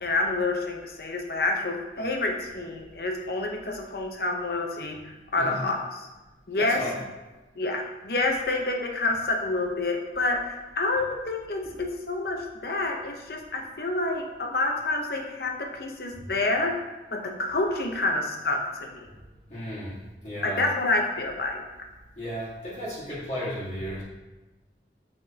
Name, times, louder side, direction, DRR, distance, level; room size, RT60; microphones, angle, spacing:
voice 1, 0.0-5.8 6.5-6.8 7.6-16.7 17.1-19.1 20.4-21.6, left 2 dB, 55° left, 2 dB, 0.8 m, -28 dB
voice 2, 6.6-7.0 9.1-9.2 11.6-11.8 16.1-16.2 19.1-19.2 19.5-20.6 22.1-24.0, equal, 40° left, -10 dB, 1.8 m, -34 dB
8.1 x 5.3 x 2.9 m, 1.1 s
head